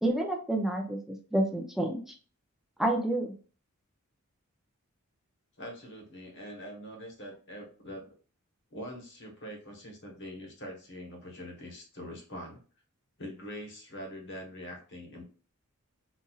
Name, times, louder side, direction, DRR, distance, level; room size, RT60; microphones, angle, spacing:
voice 1, 0.0-2.0 2.8-3.3, right 1 dB, ahead, 0 dB, 0.5 m, -29 dB
voice 2, 5.6-8.1 8.7-12.6 13.2-15.2, equal, 55° left, 1 dB, 1.1 m, -43 dB
4.2 x 2.6 x 2.3 m, 0.39 s
head